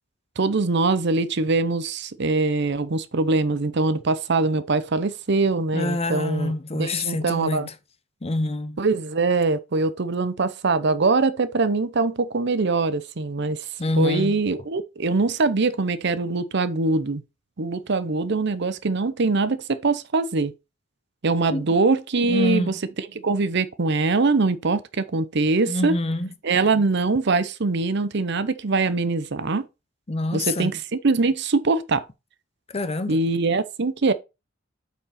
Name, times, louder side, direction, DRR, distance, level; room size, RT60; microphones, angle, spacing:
voice 1, 0.4-7.7 8.8-13.7 14.0-17.2 17.6-20.5 21.2-26.0 26.4-29.6 30.3-32.0 33.1-34.1, right 3 dB, 60° right, 0.7 m, -23 dB
voice 2, 5.7-7.7 8.2-8.8 13.8-14.4 21.5-21.6 22.2-22.7 25.7-26.3 30.1-30.7 32.7-33.2, left 2 dB, 30° left, 0.7 m, -26 dB
7.9 x 4.7 x 4.3 m
head